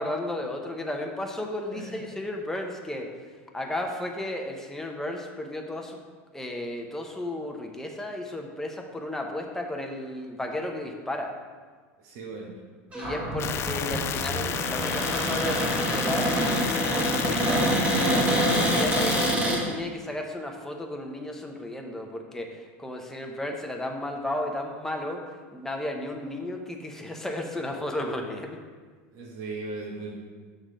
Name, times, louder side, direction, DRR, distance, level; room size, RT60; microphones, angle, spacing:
voice 1, 0.0-3.1 3.5-6.0 6.3-11.3 12.9-19.2 19.4-22.5 22.8-25.2 25.5-28.6, left 1 dB, 5° left, 2 dB, 0.9 m, -34 dB
voice 2, 1.7-2.1 12.0-12.5 29.1-30.2, right 3 dB, 60° right, -3 dB, 1.3 m, -37 dB
Cupboard open or close, 12.9-19.6, right 1 dB, 20° right, 1.7 m, -26 dB
sound 1, 13.4-19.4, left 8 dB, 35° left, 0.4 m, -31 dB
6.3 x 3.8 x 6.1 m, 1.5 s
supercardioid pair, 110°, 7 cm